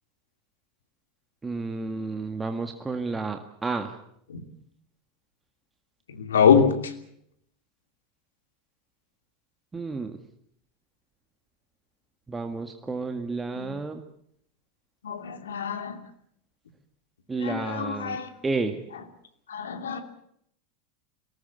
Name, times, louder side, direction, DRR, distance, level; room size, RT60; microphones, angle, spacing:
voice 1, 1.4-4.0 9.7-10.2 12.3-14.0 17.3-18.8, right 3 dB, 15° right, 7 dB, 1.8 m, -31 dB
voice 2, 6.1-6.9 13.5-13.7 15.0-16.0 17.4-18.3 19.5-20.0, left 7 dB, 80° left, 8 dB, 2.7 m, -24 dB
24.0 x 18.5 x 8.2 m, 0.71 s
hypercardioid pair, 90°, 0 cm